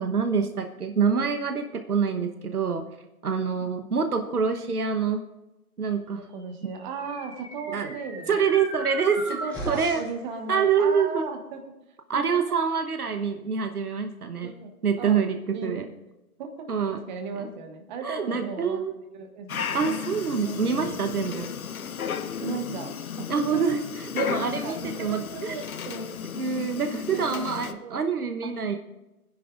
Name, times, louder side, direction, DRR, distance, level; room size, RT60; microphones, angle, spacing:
voice 1, 0.0-2.9 3.2-5.2 5.8-6.2 7.7-7.9 8.3-9.4 9.7-10.0 10.5-11.2 12.1-14.5 14.8-15.9 16.7-17.0 17.4-17.5 18.0-18.9 19.7-21.5 23.3-25.6 26.3-28.8, right 6 dB, 75° right, 6 dB, 1.2 m, -26 dB
voice 2, 3.6-3.9 6.2-8.4 9.3-11.6 12.1-12.4 14.4-14.7 15.0-15.2 15.5-15.7 16.4-16.7 16.9-18.8 19.1-19.9 20.4-20.9 22.4-23.6 24.6-26.1 27.1-27.4 27.8-28.0 28.4-28.5, right 4 dB, 30° right, 4 dB, 1.5 m, -36 dB
sound 1, 6.6-10.2, equal, 5° left, 3.2 m, -38 dB
Dog, 19.5-27.7, left 7 dB, 65° left, 0.9 m, -34 dB
23.0 x 10.0 x 2.5 m, 0.99 s
figure-of-eight pair, 135°, 45 cm